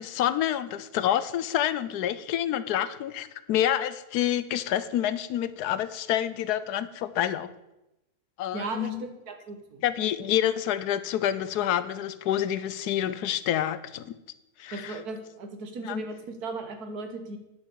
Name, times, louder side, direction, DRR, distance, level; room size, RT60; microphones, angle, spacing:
voice 1, 0.0-7.5 8.4-9.1 9.8-14.1 14.6-15.0 15.9-16.0, left 11 dB, 80° left, 14 dB, 1.2 m, -28 dB
voice 2, 8.5-9.8 14.7-17.4, right 3 dB, 75° right, 6 dB, 1.8 m, -37 dB
10.0 x 7.1 x 6.8 m, 0.95 s
omnidirectional pair, 1.7 m